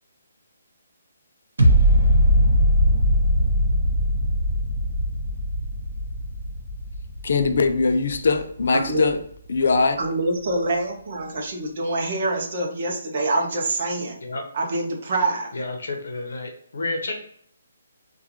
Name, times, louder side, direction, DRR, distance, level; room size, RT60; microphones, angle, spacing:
sound 1, 1.6-8.6 9.1-9.2, equal, 75° right, 1.1 m, -20 dB
voice 1, 7.2-9.2 9.5-10.0, left 4 dB, 50° left, 7 dB, 0.4 m, -21 dB
voice 2, 8.7-9.1 10.0-14.2 14.5-15.5, right 2 dB, 30° right, 2 dB, 0.6 m, -25 dB
voice 3, 15.5-17.1, left 2 dB, 65° left, 3 dB, 0.9 m, -30 dB
3.6 x 2.3 x 2.9 m, 0.64 s
hypercardioid pair, 180°, 0 cm